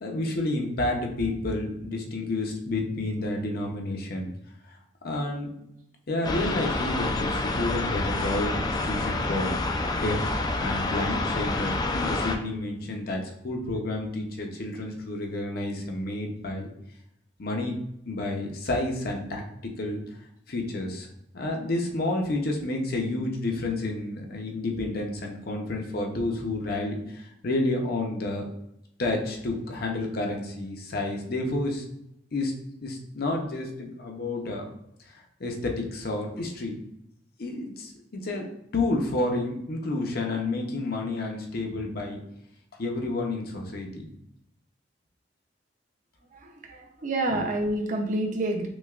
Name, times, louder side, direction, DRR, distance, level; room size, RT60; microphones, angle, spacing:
voice 1, 0.0-4.3 5.0-5.5 6.1-9.6 10.0-16.7 17.4-17.8 18.1-20.0 20.5-21.1 21.3-28.4 29.0-31.8 32.3-32.5 32.8-34.7 35.1-36.8 37.4-42.2 42.8-44.1 47.3-47.4, left 2 dB, 60° left, 2 dB, 0.7 m, -30 dB
sound 1, 6.2-12.4, left 2 dB, 25° left, 0.3 m, -28 dB
voice 2, 46.3-48.7, right 1 dB, 45° right, 2 dB, 0.6 m, -28 dB
6.1 x 2.2 x 2.4 m, 0.78 s
head